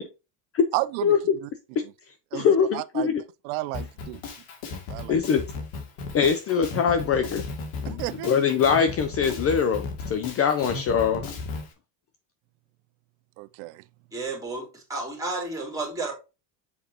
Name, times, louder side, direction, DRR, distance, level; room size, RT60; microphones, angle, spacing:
voice 1, 0.7-1.1 1.4-1.5 2.3-2.5 2.7-3.2 3.4-4.2 4.9-5.2 7.8-8.4 13.4-13.8, right 19 dB, 85° right, 0.5 m, -32 dB
voice 2, 2.3-3.2 5.1-5.4 6.1-7.4 7.8-11.2, left 7 dB, 30° left, 0.5 m, -23 dB
Drum kit, 3.7-11.7, left 4 dB, 80° left, 2.5 m, -35 dB
voice 3, 14.1-16.1, right 3 dB, 5° right, 3.4 m, -32 dB
7.1 x 5.1 x 2.8 m
cardioid pair, 150°, 46 cm